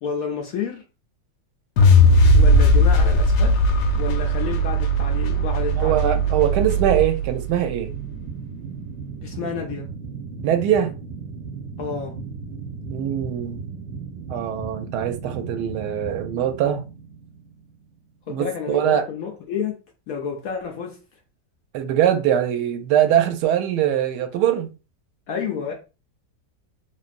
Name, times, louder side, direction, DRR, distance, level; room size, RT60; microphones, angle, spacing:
voice 1, 0.0-0.8 2.3-3.6 3.9-6.2 9.2-9.9 11.8-12.2 18.3-19.8 20.1-21.0 25.3-25.7, left 6 dB, 70° left, 0.8 m, -30 dB
sound 1, 1.8-7.9, equal, 85° left, 1.3 m, -18 dB
voice 2, 5.7-7.9 10.4-10.9 12.9-13.7 14.3-16.9 18.3-19.0 21.7-24.7, right 10 dB, 75° right, 1.1 m, -22 dB
sound 2, 7.2-18.1, right 5 dB, 45° right, 0.9 m, -36 dB
3.2 x 2.5 x 2.4 m
omnidirectional pair, 1.9 m